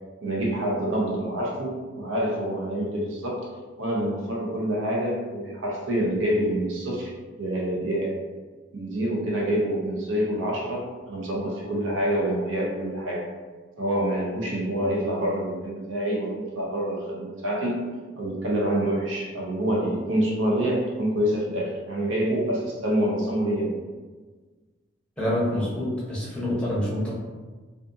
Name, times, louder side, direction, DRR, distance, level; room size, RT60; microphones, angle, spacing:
voice 1, 0.2-3.5 3.8-7.1 7.4-8.2 8.7-13.3 13.8-17.8 18.2-23.7, right 1 dB, 85° right, -3 dB, 0.7 m, -26 dB
voice 2, 25.2-27.1, left 1 dB, 5° left, -8 dB, 0.7 m, -26 dB
2.5 x 2.5 x 2.5 m, 1.4 s
head